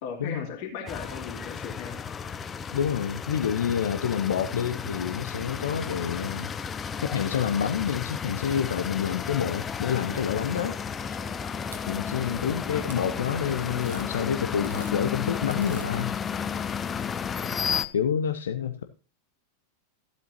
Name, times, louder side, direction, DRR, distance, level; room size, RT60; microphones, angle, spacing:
voice 1, 0.0-2.0 12.5-12.8, left 6 dB, 45° left, 0 dB, 2.8 m, -37 dB
sound 1, 0.9-17.9, left 6 dB, 20° left, 0.6 m, -33 dB
voice 2, 2.7-6.5 7.0-10.8 11.9-16.1 17.9-18.8, left 8 dB, 65° left, 8 dB, 0.7 m, -28 dB
sound 2, 9.8-11.9 12.9-13.0 13.8-14.1 14.5-15.0 15.5-15.9 17.1-17.2, right 5 dB, 70° right, 1.3 m, -48 dB
15.0 x 8.0 x 2.9 m, 0.37 s
figure-of-eight pair, 90°, 0 cm